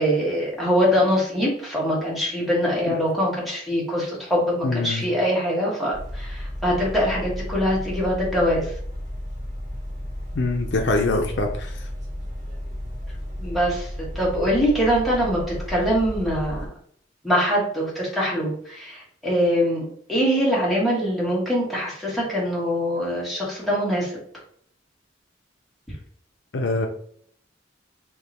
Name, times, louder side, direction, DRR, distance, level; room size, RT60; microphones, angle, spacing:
voice 1, 0.0-8.7 13.4-13.9 14.1-16.7 17.2-24.2 25.9-26.0, equal, ahead, -6 dB, 1.5 m, -23 dB
voice 2, 4.6-5.0 10.3-11.7 26.5-26.9, left 2 dB, 65° left, 3 dB, 0.6 m, -24 dB
sound 1, 5.9-16.7, equal, 40° right, 1.8 m, -33 dB
3.6 x 2.9 x 4.1 m, 0.62 s
head